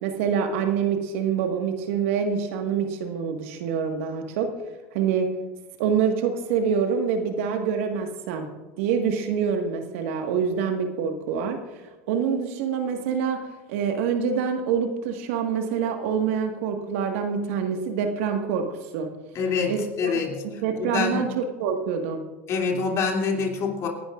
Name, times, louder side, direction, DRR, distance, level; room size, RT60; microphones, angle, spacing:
voice 1, 0.0-4.5 4.9-5.3 5.8-8.5 8.8-11.6 12.1-13.4 13.7-18.7 18.9-19.1 19.7-22.2, right 6 dB, 70° right, 4 dB, 1.7 m, -26 dB
voice 2, 19.3-21.3 22.5-23.9, left 5 dB, 40° left, 1 dB, 2.9 m, -26 dB
28.0 x 11.0 x 2.5 m, 1.2 s
hypercardioid pair, 100°, 7 cm